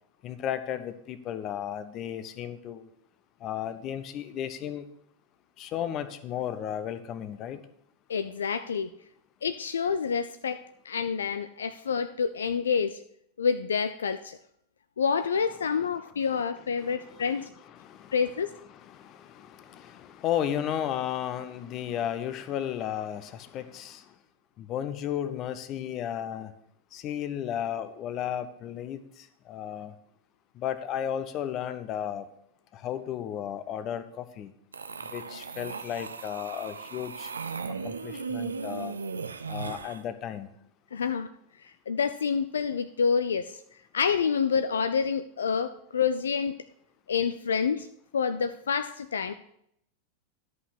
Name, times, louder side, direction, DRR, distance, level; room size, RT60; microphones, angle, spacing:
voice 1, 0.2-2.9 3.4-4.9 5.6-7.6 16.3-16.4 16.8-18.2 18.7-24.1 24.6-26.5 26.9-29.9 30.5-32.3 32.7-34.5 35.1-37.3 37.8-39.0 39.5-40.5, left 10 dB, 35° left, 12 dB, 0.7 m, -34 dB
voice 2, 8.1-8.9 9.4-13.0 13.4-14.4 15.0-17.4 18.1-18.5 40.9-41.3 41.6-43.6 43.9-46.6 47.1-47.9 48.1-49.3, left 6 dB, 70° left, 11 dB, 0.4 m, -28 dB
sound 1, 34.7-40.0, right 5 dB, 75° right, 0.5 m, -37 dB
11.5 x 5.5 x 6.1 m, 0.72 s
figure-of-eight pair, 90°, 0 cm